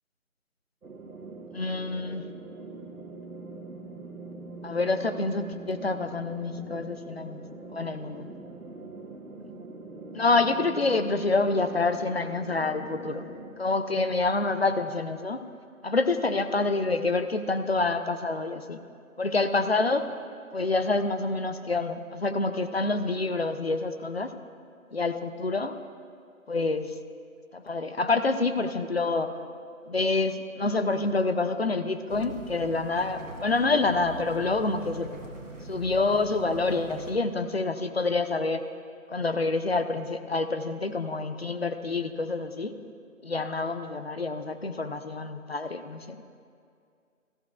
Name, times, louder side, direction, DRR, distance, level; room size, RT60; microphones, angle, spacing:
sound 1, 0.8-13.5, right 3 dB, 85° right, 1.3 m, -43 dB
voice 1, 1.5-2.2 4.6-7.4 7.7-8.3 10.1-13.3 13.6-15.4 15.8-18.8 19.2-20.1 20.5-24.3 24.9-25.7 26.5-26.9 27.5-29.3 29.9-35.1 35.7-38.6 39.1-42.7 43.2-46.2, left 3 dB, 50° left, 9 dB, 0.5 m, -27 dB
sound 2, 32.1-37.1, right 2 dB, 60° right, 1.4 m, -42 dB
15.0 x 14.5 x 2.4 m, 2.3 s
figure-of-eight pair, 170°, 42 cm